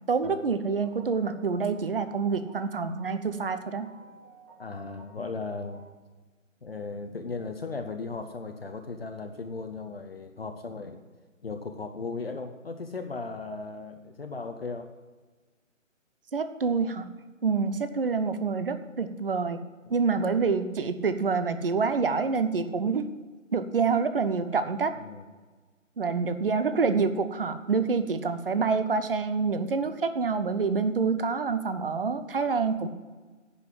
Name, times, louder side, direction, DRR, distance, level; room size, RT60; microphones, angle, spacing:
voice 1, 0.1-3.9 16.3-17.1 17.4-19.6 19.9-23.1 23.5-25.0 26.0-32.9, right 5 dB, 45° right, 10 dB, 0.8 m, -27 dB
sound 1, 0.8-5.9, right 2 dB, 15° right, 1.0 m, -53 dB
voice 2, 4.6-5.8 6.6-11.0 11.4-14.9 19.9-20.0 25.0-25.3, left 4 dB, 50° left, 5 dB, 0.8 m, -37 dB
10.0 x 5.6 x 7.6 m, 1.3 s
figure-of-eight pair, 150°, 39 cm